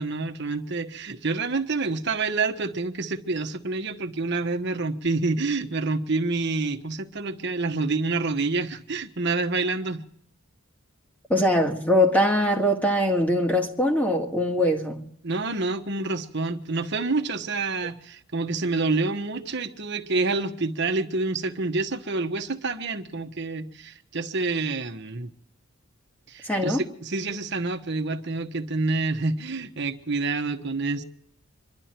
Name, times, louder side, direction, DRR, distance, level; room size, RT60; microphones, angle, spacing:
voice 1, 0.0-10.0 15.2-25.3 26.3-31.0, right 3 dB, 60° right, 1.3 m, -28 dB
voice 2, 11.3-15.0 26.4-26.8, left 1 dB, 10° left, 1.8 m, -22 dB
26.5 x 12.0 x 4.4 m
head